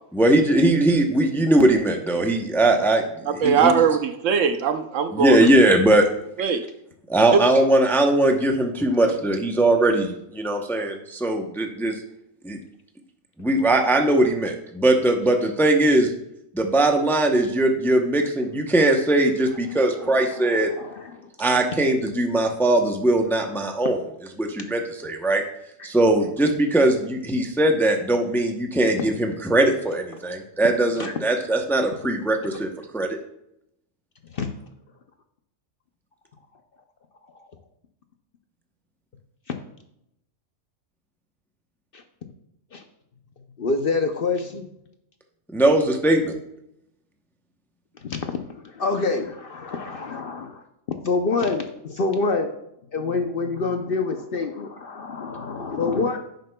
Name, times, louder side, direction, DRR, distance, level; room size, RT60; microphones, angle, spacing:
voice 1, 0.1-3.0 3.4-3.7 5.1-6.0 7.1-11.9 12.4-12.6 13.4-16.1 16.5-20.7 21.4-24.0 24.4-25.4 25.8-32.7 32.9-33.2 45.5-46.3, right 1 dB, ahead, 3 dB, 0.5 m, -20 dB
voice 2, 3.4-5.4 6.4-6.6, right 7 dB, 70° right, 9 dB, 1.0 m, -20 dB
voice 3, 19.7-21.3 25.8-25.9 29.0-29.1 31.0-31.1 32.5-32.7 34.3-34.6 41.9-42.0 42.7-42.8 43.6-44.7 48.0-50.6 51.0-52.5 52.9-56.2, left 4 dB, 55° left, 5 dB, 0.7 m, -27 dB
10.5 x 7.8 x 2.2 m, 0.79 s
omnidirectional pair, 1.4 m